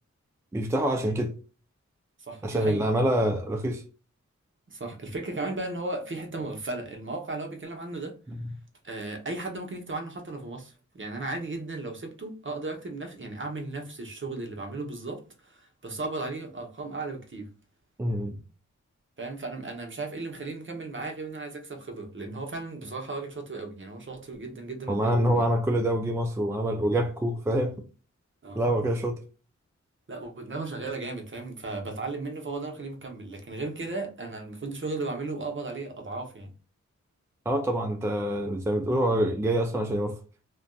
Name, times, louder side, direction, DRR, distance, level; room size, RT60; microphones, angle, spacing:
voice 1, 0.5-1.3 2.4-3.8 18.0-18.4 24.9-27.8 28.5-29.2 37.5-40.2, right 1 dB, 10° right, 0.4 m, -26 dB
voice 2, 2.2-2.9 4.7-8.2 8.8-17.5 19.2-25.5 28.4-28.6 30.1-36.5, right 3 dB, 40° right, 0.8 m, -35 dB
2.5 x 2.2 x 2.2 m
cardioid pair, 55°, 30 cm